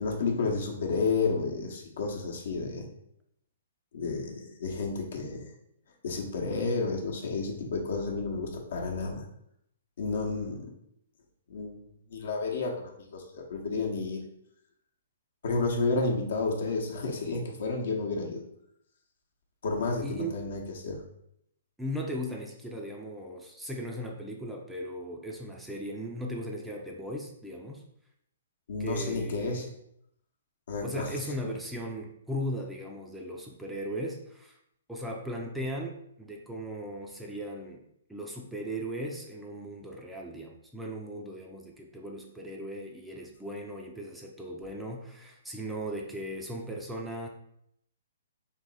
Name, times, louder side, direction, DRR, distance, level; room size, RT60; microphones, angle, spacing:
voice 1, 0.0-2.9 3.9-5.5 6.0-9.2 10.0-10.7 11.5-11.7 12.1-12.7 13.1-14.2 15.4-18.4 19.6-21.0 28.7-29.7 30.7-31.2 31.4-31.5, left 3 dB, 60° left, 1 dB, 0.9 m, -31 dB
voice 2, 20.0-20.4 21.8-27.8 28.8-29.7 30.8-34.6 34.9-37.8 38.1-47.3, equal, 5° right, 0 dB, 0.5 m, -37 dB
3.6 x 2.8 x 4.0 m, 0.74 s
figure-of-eight pair, 120°, 0 cm